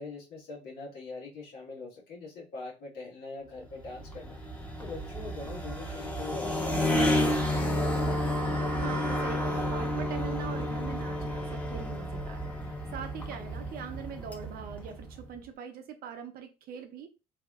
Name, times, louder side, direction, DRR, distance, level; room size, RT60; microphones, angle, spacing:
voice 1, 0.0-4.4 4.8-7.5, left 3 dB, 75° left, 1.6 m, -42 dB
sound 1, 3.7-15.3, left 1 dB, 10° left, 1.1 m, -31 dB
voice 2, 8.7-17.1, right 7 dB, 65° right, 0.7 m, -42 dB
3.5 x 2.9 x 2.4 m
supercardioid pair, 65°, 17 cm